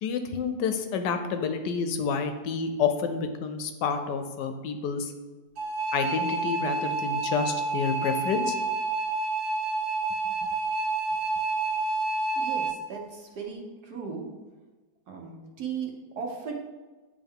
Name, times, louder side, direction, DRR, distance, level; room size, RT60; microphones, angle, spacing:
voice 1, 0.0-5.1 5.9-8.6, left 5 dB, 75° left, 7 dB, 1.1 m, -29 dB
sound 1, 5.6-12.7, right 3 dB, 90° right, 1.8 m, -29 dB
voice 2, 12.4-14.3 15.1-16.5, right 6 dB, 65° right, 1 dB, 1.3 m, -37 dB
9.1 x 3.4 x 3.6 m, 1.2 s
omnidirectional pair, 2.0 m